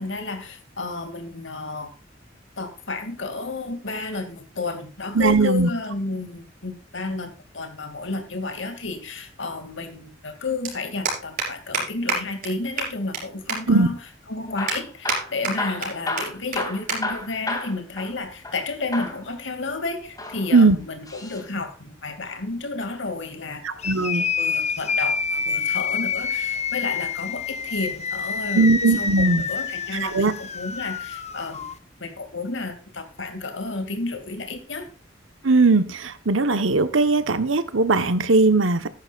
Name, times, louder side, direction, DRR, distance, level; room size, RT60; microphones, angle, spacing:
voice 1, 0.0-1.9 2.6-14.0 14.3-23.8 24.4-31.7 32.0-34.9, left 3 dB, 65° left, 7 dB, 2.5 m, -31 dB
voice 2, 5.1-5.7 13.7-13.9 20.5-20.8 23.6-24.2 28.6-29.4 30.0-30.3 35.4-38.9, right 3 dB, 80° right, 11 dB, 1.1 m, -19 dB
sound 1, 10.6-10.7 11.1-11.5 11.7-11.8 12.1-12.2 12.4-12.5 12.8-13.2 13.5-13.6 14.1-14.2 14.7-15.2 15.4-15.9 16.2-16.3 16.5-16.6 16.9-17.0 17.3-17.5 18.3-18.6, right 4 dB, 45° right, 5.2 m, -26 dB
Hammer / Drill, 14.4-18.6 18.9-19.2 20.0-21.5 23.2-24.5 26.2-26.6 27.3-28.2 28.9-29.1 29.4-29.5 30.1-30.2, left 2 dB, 20° left, 2.6 m, -33 dB
sound 2, 23.8-31.7, left 6 dB, 35° left, 0.9 m, -27 dB
14.5 x 11.5 x 2.5 m, 0.37 s
head